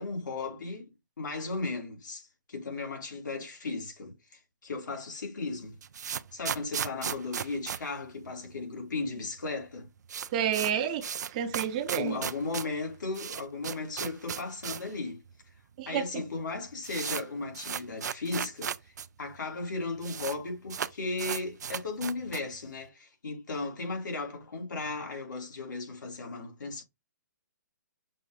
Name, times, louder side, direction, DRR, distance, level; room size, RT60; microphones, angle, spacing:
voice 1, 0.0-5.8 6.3-9.9 11.9-15.2 15.9-26.8, left 3 dB, 85° left, 2.6 m, -36 dB
sound 1, 5.5-8.8 9.0-9.1 9.4-9.5 9.8-15.0 15.3-15.4 16.1-16.2 16.4-19.1 19.3-19.4 19.6-20.4 20.7-22.6, right 8 dB, 65° right, 0.4 m, -36 dB
voice 2, 10.3-11.0 11.3-12.2 15.8-16.2, right 9 dB, 25° right, 0.6 m, -30 dB
6.1 x 2.6 x 3.3 m
hypercardioid pair, 165°, 10 cm